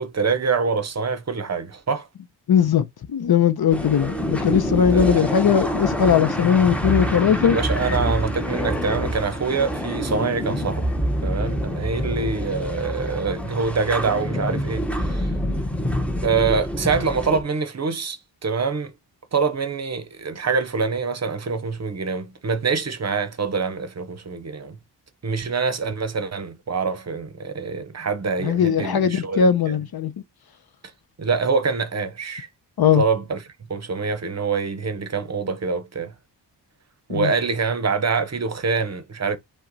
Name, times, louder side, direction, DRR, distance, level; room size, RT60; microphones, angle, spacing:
voice 1, 0.0-2.1 4.9-5.2 7.4-10.9 11.2-15.3 16.2-18.9 19.3-24.8 25.2-29.8 31.2-32.5 32.9-33.4 33.7-36.1 37.1-39.4, right 5 dB, 40° right, 0.7 m, -25 dB
voice 2, 2.5-7.6 15.4-15.7 28.4-30.1 32.8-33.0 37.1-37.3, left 8 dB, 60° left, 0.6 m, -19 dB
sound 1, 3.7-17.4, equal, 5° left, 0.7 m, -26 dB
5.7 x 2.2 x 3.9 m
wide cardioid pair, 170°, 42 cm